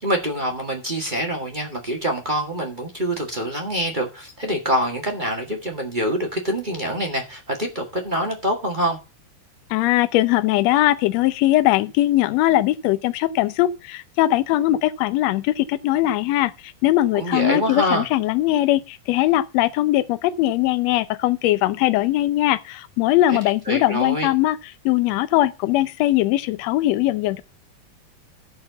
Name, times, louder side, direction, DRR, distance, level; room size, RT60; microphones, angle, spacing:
voice 1, 0.0-9.0 17.1-18.1 23.3-23.4 23.7-24.3, equal, 25° right, 1.1 m, -25 dB
voice 2, 9.7-24.6 24.8-27.4, left 15 dB, 80° left, 1.5 m, -20 dB
13.5 x 4.5 x 6.7 m
omnidirectional pair, 3.8 m